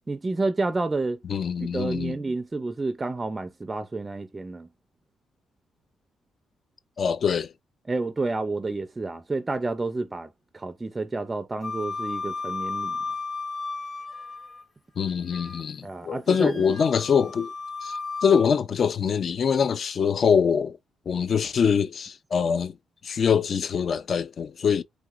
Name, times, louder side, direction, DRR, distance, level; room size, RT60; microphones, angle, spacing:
voice 1, 0.1-1.2 1.7-4.7 7.9-10.3 10.5-13.0 15.8-16.6, right 3 dB, 20° right, 0.4 m, -29 dB
voice 2, 1.3-2.2 7.0-7.5 15.0-17.5 17.8-20.8 21.1-22.7 23.0-24.8, left 6 dB, 50° left, 0.3 m, -24 dB
Wind instrument woodwind instrument, 11.6-14.6 15.0-15.7 16.3-18.5, left 4 dB, 30° left, 1.1 m, -34 dB
3.0 x 2.8 x 2.4 m
cardioid pair, 90°, 0 cm